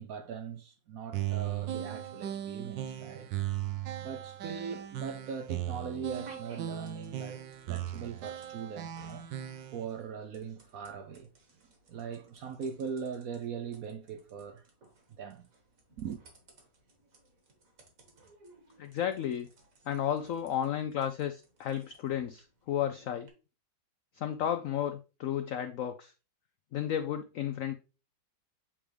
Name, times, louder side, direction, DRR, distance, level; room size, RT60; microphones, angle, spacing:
voice 1, 0.0-3.3 4.0-7.4 7.7-9.3 9.7-11.3 11.9-14.6 15.2-15.5 16.0-16.2, right 6 dB, 70° right, 0.9 m, -40 dB
sound 1, 1.1-9.8, right 11 dB, 85° right, 1.4 m, -37 dB
sound 2, 3.8-23.3, right 1 dB, 50° right, 1.9 m, -61 dB
voice 2, 18.8-19.5 19.9-23.3 24.1-26.1 26.7-27.7, left 10 dB, 80° left, 0.7 m, -33 dB
8.6 x 3.5 x 3.3 m
omnidirectional pair, 2.0 m